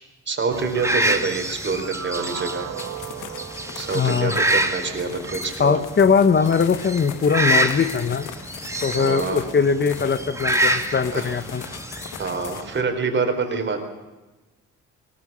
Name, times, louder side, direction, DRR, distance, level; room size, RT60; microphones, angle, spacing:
voice 1, 0.3-2.7 3.7-5.8 8.9-9.4 11.1-11.3 12.2-13.8, right 4 dB, 40° right, 5 dB, 4.2 m, -26 dB
sound 1, 0.5-12.8, right 1 dB, 10° right, 2.1 m, -27 dB
sound 2, 1.5-5.0, right 9 dB, 60° right, 1.4 m, -37 dB
sound 3, 2.8-12.6, left 10 dB, 85° left, 1.4 m, -41 dB
voice 2, 3.9-4.4 5.6-8.3 8.8-11.6, left 6 dB, 35° left, 10 dB, 1.3 m, -20 dB
20.0 x 19.0 x 6.9 m, 1.1 s
cardioid pair, 90°, 30 cm